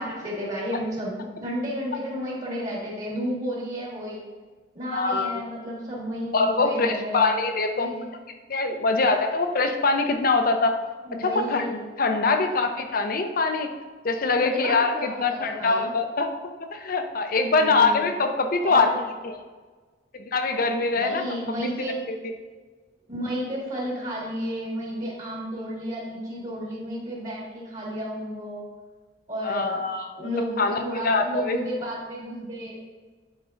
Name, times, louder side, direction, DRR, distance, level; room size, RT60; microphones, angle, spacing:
voice 1, 0.0-4.2 4.7-7.3 7.7-8.0 11.1-11.7 14.4-15.9 17.5-18.0 18.6-19.0 20.9-22.0 23.1-28.6 29.3-29.8 30.2-32.8, equal, 45° right, -5 dB, 2.0 m, -32 dB
voice 2, 4.9-5.4 6.3-7.9 8.5-10.8 11.2-13.7 14.0-16.3 16.6-18.9 19.2-19.4 20.1-21.2 21.8-22.3 29.4-30.3 30.6-30.8 31.0-31.6, left 3 dB, 55° left, 6 dB, 0.7 m, -23 dB
10.0 x 4.5 x 2.6 m, 1.4 s
head